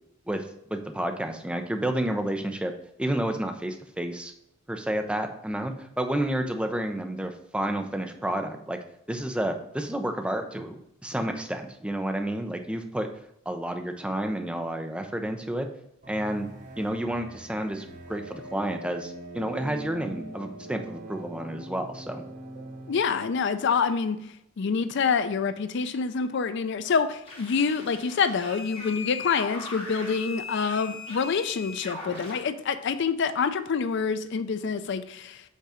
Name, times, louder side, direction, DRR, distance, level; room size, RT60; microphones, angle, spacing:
voice 1, 0.7-2.7 3.0-4.3 4.7-8.8 9.1-13.1 13.5-15.7 16.1-16.5 16.8-22.2, right 1 dB, 5° right, 5 dB, 0.5 m, -30 dB
sound 1, 16.0-22.9, right 2 dB, 40° right, 0.9 m, -42 dB
voice 2, 22.9-24.2 24.6-35.4, left 5 dB, 60° left, 11 dB, 0.4 m, -26 dB
sound 2, 27.2-32.4, left 4 dB, 30° left, 1.6 m, -39 dB
5.4 x 3.8 x 4.9 m, 0.79 s
head